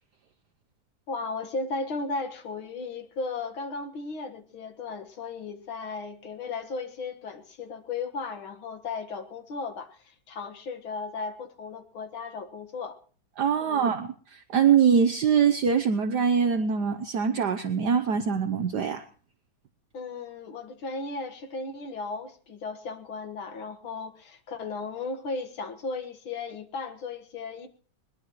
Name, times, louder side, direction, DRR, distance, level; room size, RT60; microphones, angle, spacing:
voice 1, 1.1-13.0 13.6-13.9 19.9-27.7, left 4 dB, 90° left, 7 dB, 2.5 m, -35 dB
voice 2, 13.4-19.0, right 7 dB, 60° right, 6 dB, 1.4 m, -23 dB
21.0 x 21.0 x 3.1 m, 0.43 s
omnidirectional pair, 2.2 m